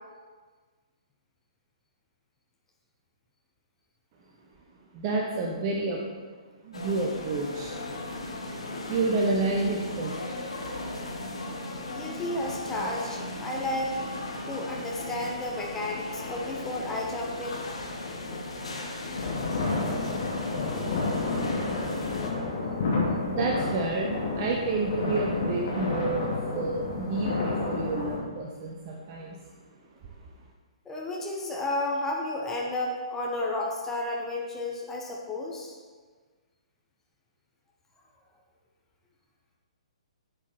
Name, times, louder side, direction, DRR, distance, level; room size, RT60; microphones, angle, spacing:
voice 1, 4.9-6.0 6.6-7.8 8.9-10.1 23.3-29.4, right 3 dB, 30° right, -1 dB, 1.0 m, -29 dB
sound 1, 6.7-22.3, left 2 dB, 65° left, 1.5 m, -37 dB
voice 2, 11.8-13.9 14.5-17.6 30.8-35.8, left 1 dB, 10° left, -2 dB, 1.2 m, -32 dB
sound 2, 19.2-28.2, left 3 dB, 45° left, 2.4 m, -30 dB
11.0 x 7.3 x 4.2 m, 1.5 s
figure-of-eight pair, 125°, 3 cm